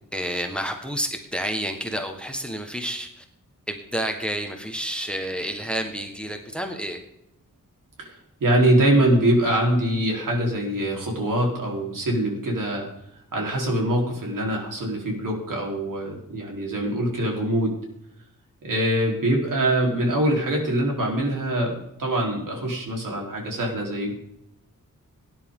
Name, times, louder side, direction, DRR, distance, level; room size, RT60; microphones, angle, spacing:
voice 1, 0.1-3.2 3.7-7.0, right 1 dB, 5° left, 4 dB, 1.3 m, -30 dB
voice 2, 8.4-12.9 13.3-17.7 18.6-24.1, right 1 dB, 75° right, 0 dB, 3.8 m, -23 dB
18.0 x 10.5 x 3.8 m, 0.80 s
wide cardioid pair, 170°, 32 cm